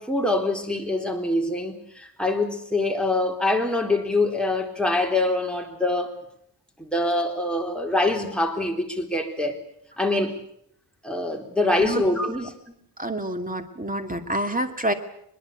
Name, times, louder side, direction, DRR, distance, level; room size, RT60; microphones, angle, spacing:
voice 1, 0.0-6.1 6.8-9.6 10.0-10.4 11.0-12.5, left 2 dB, ahead, 1 dB, 3.8 m, -24 dB
voice 2, 13.0-14.9, right 1 dB, 20° right, 7 dB, 2.4 m, -28 dB
22.5 x 21.5 x 8.5 m, 0.72 s
wide cardioid pair, 115°, 41 cm